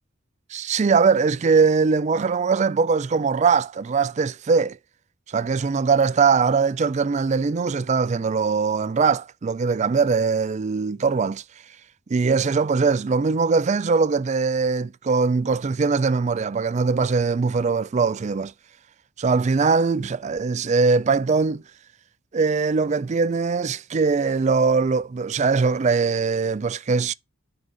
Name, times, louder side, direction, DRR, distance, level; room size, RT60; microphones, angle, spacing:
voice 1, 0.5-4.8 5.3-11.4 12.1-18.5 19.2-21.6 22.3-27.1, right 4 dB, 35° right, 0.4 m, -21 dB
9.6 x 3.9 x 5.1 m
head